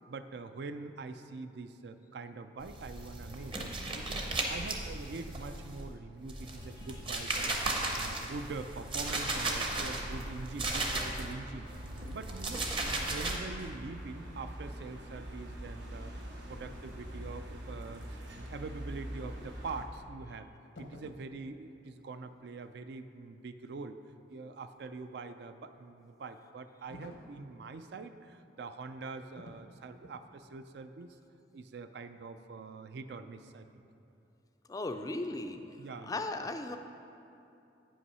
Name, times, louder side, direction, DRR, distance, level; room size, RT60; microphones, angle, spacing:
voice 1, 0.0-7.6 7.9-11.7 12.1-16.1 16.5-20.5 20.8-24.0 24.3-31.2 31.5-33.8 35.8-36.2, right 3 dB, 65° right, 10 dB, 0.4 m, -44 dB
sound 1, 2.6-5.9 6.3-11.3 11.7-13.4, right 2 dB, 30° right, 0.7 m, -36 dB
sound 2, 7.9-19.8, right 1 dB, 85° right, 1.1 m, -45 dB
sound 3, 20.7-21.3 26.9-27.4 29.3-29.7 30.0-30.3, left 1 dB, 75° left, 0.8 m, -50 dB
voice 2, 34.7-35.6 36.1-36.8, left 2 dB, 20° left, 7 dB, 0.3 m, -36 dB
8.5 x 5.6 x 5.5 m, 2.7 s
head